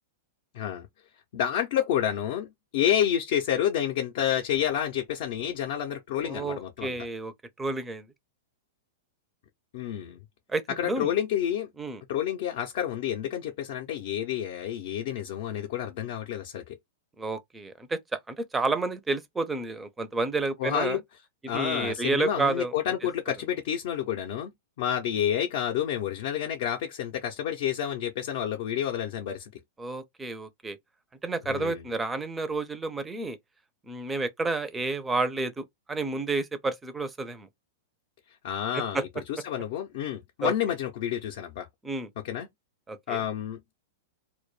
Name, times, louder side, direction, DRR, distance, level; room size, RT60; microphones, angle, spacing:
voice 1, 0.5-0.9 1.3-7.0 9.7-10.2 10.8-11.7 12.1-16.8 20.6-21.0 21.5-24.5 24.8-29.5 31.5-31.8 38.4-41.7 42.2-42.5 43.1-43.7, left 10 dB, 60° left, 0.5 m, -29 dB
voice 2, 6.2-8.1 10.5-11.1 11.8-12.0 17.2-21.0 21.4-22.7 29.8-30.8 31.2-33.4 33.9-37.5 38.9-39.0 40.4-40.5 41.8-42.1 42.9-43.2, right 3 dB, 10° right, 0.4 m, -30 dB
2.2 x 2.1 x 3.0 m
hypercardioid pair, 140°, 0 cm